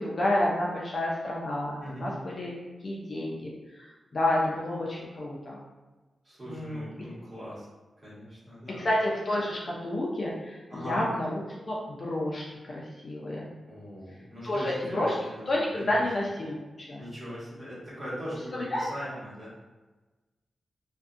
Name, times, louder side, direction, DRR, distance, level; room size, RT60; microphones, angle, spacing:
voice 1, 0.0-2.5 2.8-3.5 3.8-5.6 6.5-6.9 8.8-13.4 14.4-15.1 15.5-17.0 18.5-18.8, left 1 dB, 40° left, -4 dB, 0.4 m, -30 dB
voice 2, 1.8-2.1 6.2-7.7 8.0-8.9 10.7-11.0 13.6-16.0 17.0-19.5, equal, 35° right, -10 dB, 1.3 m, -40 dB
2.5 x 2.5 x 2.4 m, 1.2 s
wide cardioid pair, 140°, 0 cm